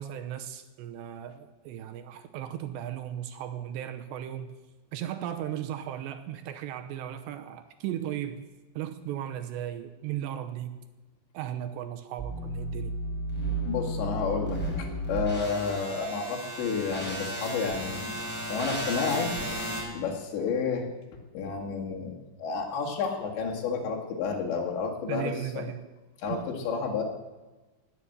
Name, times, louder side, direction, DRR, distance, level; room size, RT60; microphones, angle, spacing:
voice 1, 0.0-4.6 4.9-8.4 8.8-10.9 11.3-13.0 25.1-25.9 26.3-26.5, right 11 dB, 75° right, 9 dB, 2.9 m, -36 dB
sound 1, 12.2-19.8, right 1 dB, ahead, 5.2 m, -33 dB
voice 2, 13.7-18.1 18.5-19.4 19.9-20.9 21.3-22.1 22.4-25.7 26.2-27.0, left 5 dB, 75° left, 0 dB, 4.2 m, -30 dB
20.0 x 8.6 x 8.0 m, 1.2 s
omnidirectional pair, 5.3 m